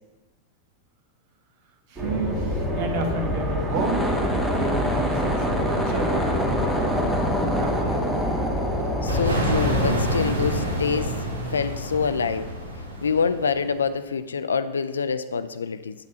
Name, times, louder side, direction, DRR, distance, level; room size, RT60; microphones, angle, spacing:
voice 1, 1.9-4.2 4.5-7.0 7.5-8.3, right 4 dB, 45° right, 5 dB, 1.1 m, -32 dB
sound 1, 2.0-10.0, left 1 dB, 20° right, 1.9 m, -27 dB
sound 2, 3.6-10.2, equal, 5° right, 1.0 m, -27 dB
voice 2, 9.0-11.1 11.5-12.5 13.0-15.9, left 5 dB, 70° left, 12 dB, 0.3 m, -26 dB
sound 3, 9.1-13.7, equal, 75° right, 1.6 m, -27 dB
8.2 x 8.0 x 2.7 m, 1.1 s
figure-of-eight pair, 90°, 0 cm